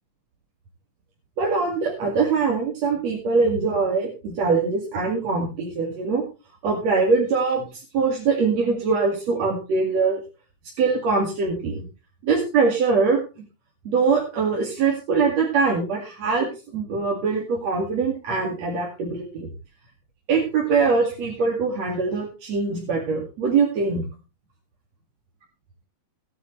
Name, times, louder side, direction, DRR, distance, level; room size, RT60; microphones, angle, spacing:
voice 1, 1.4-6.2 6.6-10.2 10.8-11.9 12.2-13.2 13.8-19.5 20.3-24.1, right 4 dB, 60° right, -1 dB, 3.3 m, -23 dB
17.5 x 10.0 x 3.2 m, 0.31 s
omnidirectional pair, 3.5 m